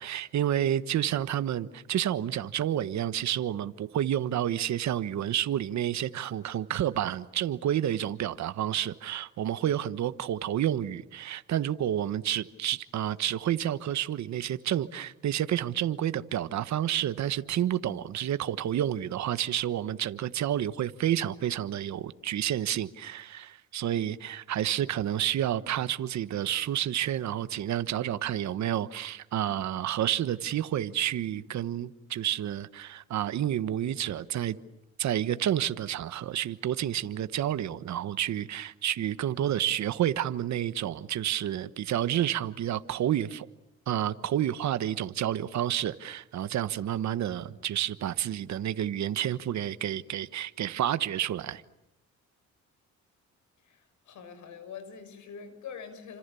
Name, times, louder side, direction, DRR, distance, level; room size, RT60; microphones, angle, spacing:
voice 1, 0.0-34.6 35.0-43.5 43.9-51.6, right 11 dB, 65° right, 1.3 m, -30 dB
voice 2, 53.6-56.2, left 6 dB, 75° left, 6.3 m, -44 dB
29.5 x 26.5 x 7.1 m
cardioid pair, 90°, 30 cm